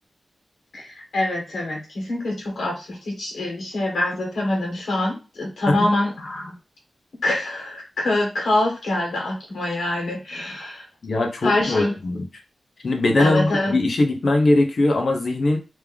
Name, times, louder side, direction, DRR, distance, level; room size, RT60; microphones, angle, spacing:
voice 1, 0.7-6.5 7.2-10.8 11.4-11.9 13.2-13.7, left 1 dB, 85° left, -2 dB, 1.7 m, -25 dB
voice 2, 11.0-12.3 12.8-15.6, left 2 dB, 50° left, 4 dB, 0.9 m, -20 dB
3.4 x 3.3 x 3.5 m, 0.30 s
wide cardioid pair, 165°, 0 cm